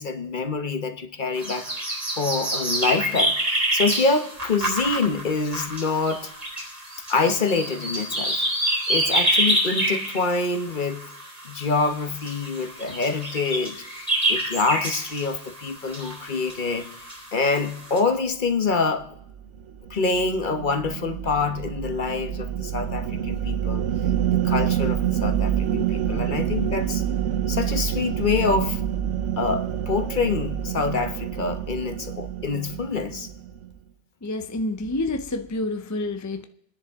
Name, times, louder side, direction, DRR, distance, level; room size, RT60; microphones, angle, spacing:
voice 1, 0.0-1.7 2.2-6.3 7.1-8.4 8.9-11.0 11.4-13.8 14.3-16.9 17.3-19.1 19.9-23.9 24.3-27.0 27.5-28.8 29.4-33.3, left 4 dB, 45° left, 1.1 m, -26 dB
sound 1, 1.4-18.0, right 1 dB, 35° right, 3.3 m, -27 dB
sound 2, 19.2-33.7, right 10 dB, 85° right, 1.1 m, -27 dB
voice 2, 34.2-36.4, left 2 dB, 25° left, 0.4 m, -28 dB
30.0 x 10.0 x 3.6 m
omnidirectional pair, 1.2 m